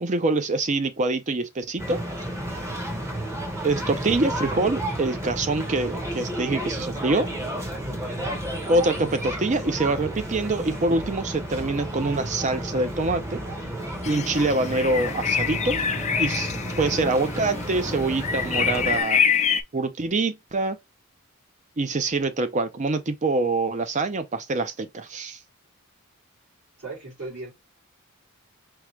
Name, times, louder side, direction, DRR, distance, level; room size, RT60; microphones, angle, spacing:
voice 1, 0.0-2.0 3.6-7.3 8.7-13.4 14.1-15.8 16.2-19.2 19.7-20.8 21.8-25.4, right 2 dB, 35° right, 0.6 m, -25 dB
sound 1, 1.8-19.0, right 1 dB, 15° right, 0.9 m, -32 dB
voice 2, 7.9-8.3 26.8-27.5, right 3 dB, 55° right, 2.8 m, -38 dB
sound 2, 14.0-19.6, left 7 dB, 30° left, 0.4 m, -26 dB
4.7 x 2.3 x 3.0 m
head